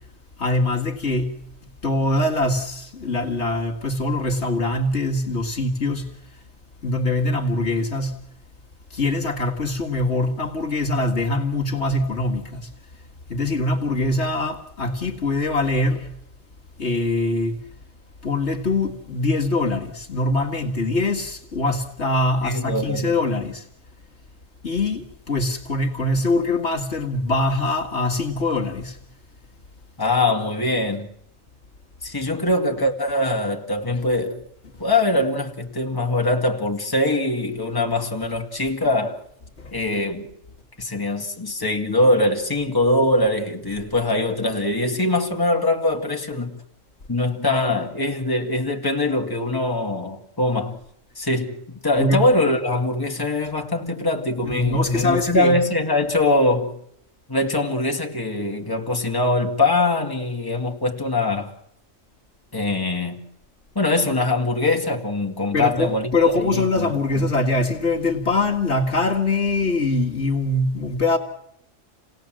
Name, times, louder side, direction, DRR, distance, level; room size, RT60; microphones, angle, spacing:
voice 1, 0.4-1.4 1.8-6.2 6.8-8.2 8.9-12.7 13.3-16.1 16.8-17.6 18.2-23.7 24.6-29.0 33.9-34.0 39.6-39.8 52.0-52.2 54.4-55.6 65.5-71.2, left 2 dB, 55° left, 2.1 m, -23 dB
voice 2, 22.4-23.2 30.0-31.1 32.0-34.4 34.8-39.2 39.7-40.3 40.8-46.6 47.1-50.8 51.2-56.8 57.3-61.5 62.5-63.2 63.8-66.9, left 2 dB, 15° left, 2.2 m, -22 dB
29.0 x 18.5 x 7.6 m
omnidirectional pair, 1.4 m